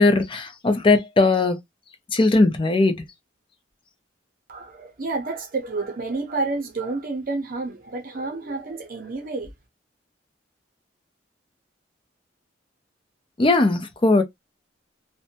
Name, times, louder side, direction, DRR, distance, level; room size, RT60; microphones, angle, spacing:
voice 1, 0.0-1.6 2.1-2.9 13.4-14.2, left 2 dB, 30° left, 0.5 m, -18 dB
voice 2, 4.5-9.5, right 3 dB, 50° right, 0.7 m, -29 dB
2.6 x 2.2 x 2.7 m
head